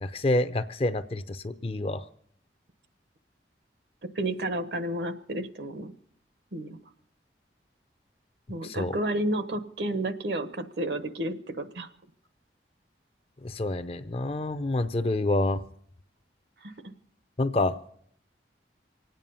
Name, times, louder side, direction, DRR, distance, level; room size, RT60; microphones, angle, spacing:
voice 1, 0.0-2.0 8.6-8.9 13.4-15.6 17.4-17.7, left 2 dB, 30° left, 11 dB, 0.5 m, -27 dB
voice 2, 4.1-5.9 6.5-6.8 8.5-11.9 16.6-16.7, right 1 dB, 70° right, 10 dB, 1.0 m, -31 dB
24.5 x 9.2 x 5.5 m, 0.64 s
head